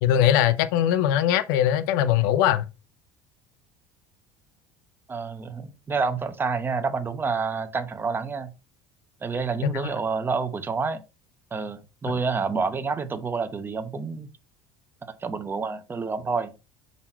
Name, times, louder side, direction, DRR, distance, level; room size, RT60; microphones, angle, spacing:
voice 1, 0.0-2.6 9.6-9.8, left 11 dB, 85° left, 0.5 m, -21 dB
voice 2, 5.1-8.5 9.2-11.0 11.5-14.3 15.2-16.5, right 4 dB, 20° right, 0.8 m, -28 dB
5.7 x 4.1 x 4.4 m
supercardioid pair, 120°, 11 cm